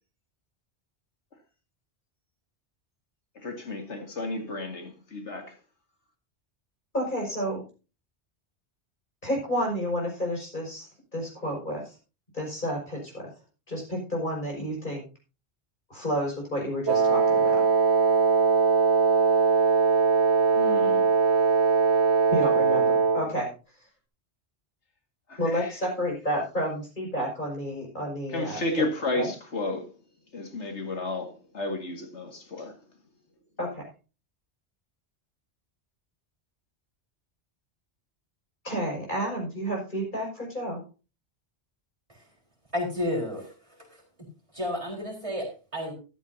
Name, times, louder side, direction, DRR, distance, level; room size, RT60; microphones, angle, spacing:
voice 1, 3.4-5.6 20.5-21.1 25.3-25.7 28.3-29.9 30.3-32.7, left 2 dB, 85° left, 2.3 m, -32 dB
voice 2, 6.9-7.6 9.2-11.9 12.3-13.3 13.7-15.0 15.9-17.6 22.3-23.5 25.4-28.8 29.2-29.3 33.6-33.8 38.6-40.8, equal, 45° left, 5.7 m, -30 dB
Wind instrument woodwind instrument, 16.9-23.3, right 5 dB, 75° right, 1.5 m, -21 dB
voice 3, 42.7-43.5 43.9-44.0 44.5-45.9, left 1 dB, 30° right, 4.3 m, -31 dB
14.0 x 12.0 x 2.8 m
omnidirectional pair, 1.2 m